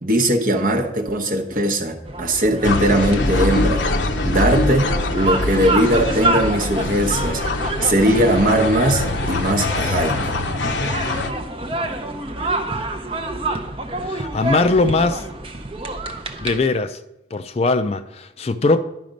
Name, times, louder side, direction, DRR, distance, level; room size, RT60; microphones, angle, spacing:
voice 1, 0.0-3.8 4.2-7.4 7.8-10.3, right 1 dB, 45° right, 1.0 m, -19 dB
sound 1, 2.1-16.6, right 2 dB, 30° right, 0.6 m, -28 dB
sound 2, 2.6-11.3, left 2 dB, 75° left, 0.6 m, -23 dB
voice 2, 14.0-15.2 16.4-17.0 17.3-18.8, left 3 dB, 35° left, 0.3 m, -20 dB
11.0 x 5.1 x 5.1 m
head